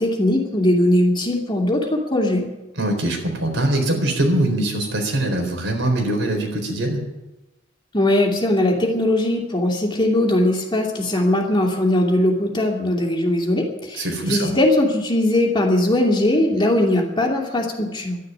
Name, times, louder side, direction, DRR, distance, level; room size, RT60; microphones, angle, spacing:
voice 1, 0.0-2.5 7.9-18.2, left 1 dB, 25° left, 0 dB, 2.5 m, -20 dB
voice 2, 2.8-7.0 13.9-14.5, right 1 dB, 75° right, 2 dB, 4.2 m, -22 dB
12.5 x 11.0 x 9.7 m, 1.0 s
head